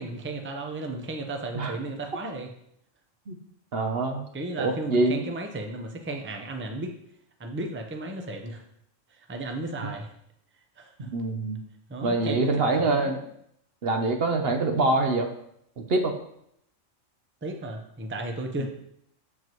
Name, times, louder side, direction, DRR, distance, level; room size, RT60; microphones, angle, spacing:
voice 1, 0.0-2.5 4.3-7.0 7.4-8.6 9.1-10.1 10.8-11.1 11.9-12.5 12.8-13.1 17.4-18.7, right 2 dB, 10° right, 3 dB, 0.6 m, -34 dB
voice 2, 3.7-4.3 4.6-5.2 9.8-9.9 11.1-11.6 12.0-13.2 13.8-15.3 15.8-16.2 18.6-18.7, right 2 dB, 55° right, 5 dB, 0.9 m, -25 dB
7.8 x 7.6 x 3.0 m, 0.73 s
omnidirectional pair, 1.3 m